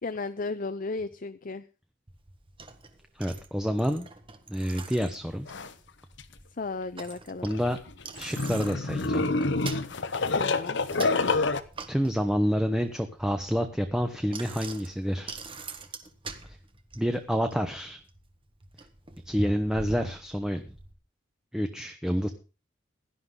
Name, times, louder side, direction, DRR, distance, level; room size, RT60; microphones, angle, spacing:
voice 1, 0.0-1.7 6.6-7.5 10.3-11.3, left 3 dB, 45° left, 11 dB, 0.7 m, -35 dB
Bicycle, 2.1-20.9, right 3 dB, 30° right, 1.5 m, -44 dB
voice 2, 3.2-4.1 4.5-5.5 7.4-7.8 8.2-9.3 11.9-15.4 16.9-18.0 19.3-20.7 21.5-22.3, equal, 5° right, 6 dB, 1.0 m, -28 dB
Group of pigs, 5.5-5.7 6.2-6.3 7.5-11.6, left 3 dB, 65° left, 1.0 m, -27 dB
17.0 x 11.5 x 3.9 m, 0.33 s
head